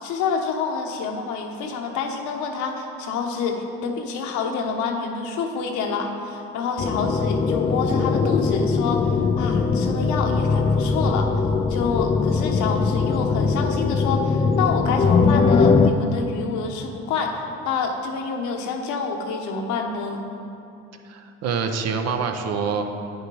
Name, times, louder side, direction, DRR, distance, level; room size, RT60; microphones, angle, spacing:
voice 1, 0.0-11.4 11.7-17.4 17.6-20.3, left 5 dB, 70° left, 3 dB, 1.1 m, -27 dB
sound 1, 6.8-15.9, left 4 dB, 20° left, 0.4 m, -21 dB
voice 2, 21.0-22.8, right 5 dB, 55° right, 6 dB, 0.9 m, -26 dB
9.1 x 6.5 x 4.8 m, 2.7 s
supercardioid pair, 90°, 30 cm